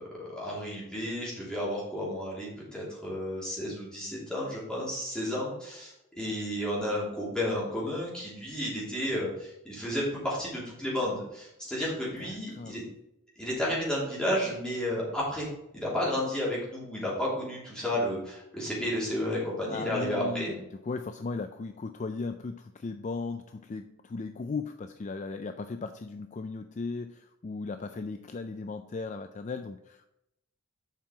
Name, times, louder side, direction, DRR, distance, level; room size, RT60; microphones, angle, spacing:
voice 1, 0.0-12.8 13.4-15.5 15.7-20.5, left 1 dB, 5° left, -7 dB, 3.1 m, -32 dB
voice 2, 12.2-12.8 19.7-30.0, left 4 dB, 35° left, 8 dB, 0.3 m, -37 dB
7.4 x 5.5 x 4.7 m, 0.86 s
head